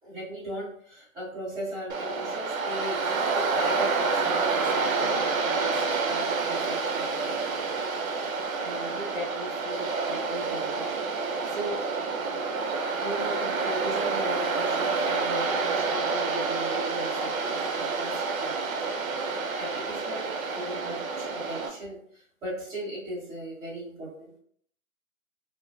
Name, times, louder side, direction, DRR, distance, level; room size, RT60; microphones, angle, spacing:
voice 1, 0.0-7.7 8.6-10.9 11.4-11.8 13.0-24.3, right 1 dB, 10° right, -10 dB, 1.0 m, -38 dB
Waves surf, 1.9-21.7, right 4 dB, 70° right, 0.6 m, -28 dB
2.9 x 2.2 x 2.5 m, 0.63 s
hypercardioid pair, 150°, 42 cm